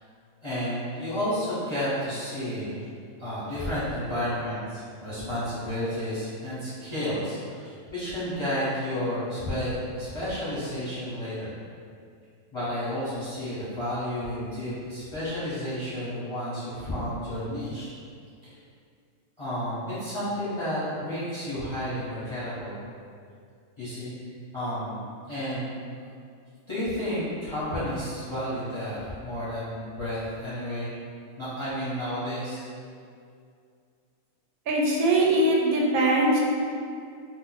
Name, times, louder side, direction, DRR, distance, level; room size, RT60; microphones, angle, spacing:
voice 1, 0.4-2.9 3.2-11.6 12.5-17.9 18.4-18.6 19.4-22.8 23.8-24.1 24.5-25.8 26.7-31.0 31.4-32.6, equal, 30° left, -12 dB, 0.5 m, -31 dB
voice 2, 34.7-36.4, right 1 dB, 85° right, -3 dB, 1.0 m, -21 dB
2.5 x 2.1 x 3.9 m, 2.3 s
omnidirectional pair, 1.5 m